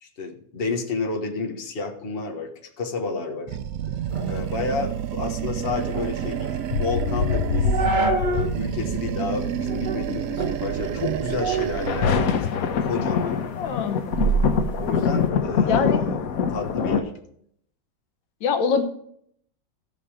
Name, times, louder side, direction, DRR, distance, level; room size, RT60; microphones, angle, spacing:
voice 1, 0.0-3.6 3.9-4.0 4.3-7.9 8.1-13.4 14.8-16.2 16.5-17.1, left 4 dB, 35° left, 2 dB, 1.3 m, -30 dB
Animal, 3.5-8.0 8.3-12.2, right 10 dB, 80° right, 0.7 m, -30 dB
sound 1, 4.1-8.6 8.9-9.0 9.7-10.0 10.4-12.5 12.9-15.3, right 5 dB, 30° right, 1.2 m, -28 dB
sound 2, 6.7-10.3 11.5-17.0, left 6 dB, 60° left, 1.1 m, -25 dB
voice 2, 13.6-14.0 15.7-16.0 18.4-18.8, left 6 dB, 90° left, 7 dB, 1.7 m, -23 dB
15.5 x 5.5 x 5.0 m, 0.69 s
omnidirectional pair, 2.0 m